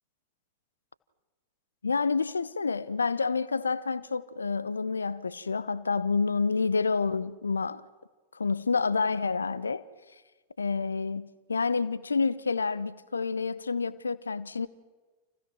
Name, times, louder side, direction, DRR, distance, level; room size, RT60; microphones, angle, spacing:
voice 1, 1.8-7.8 8.3-9.8 10.6-14.7, left 4 dB, 75° left, 1.0 m, -28 dB
29.5 x 29.0 x 6.0 m
figure-of-eight pair, 90°, 0 cm